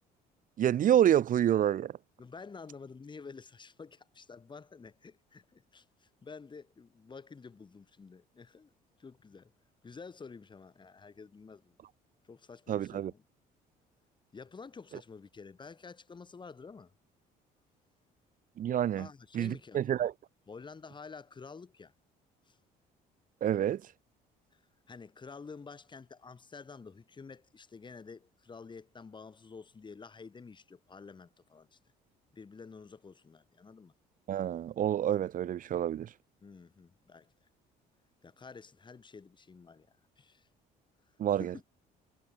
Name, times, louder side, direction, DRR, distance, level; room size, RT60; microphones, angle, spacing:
voice 1, 0.6-1.9 12.7-13.1 18.6-19.1 19.3-20.1 23.4-23.8 34.3-36.1 41.2-41.5, right 10 dB, 55° right, 1.3 m, -28 dB
voice 2, 2.2-8.7 9.0-9.5 9.8-11.8 12.2-13.2 14.3-16.9 19.0-20.1 20.5-21.9 22.4-22.6 24.5-24.6 24.9-31.8 32.3-33.9 36.4-37.5 38.2-40.5 41.3-41.6, left 5 dB, 25° left, 7.5 m, -50 dB
cardioid pair, 110°, 17 cm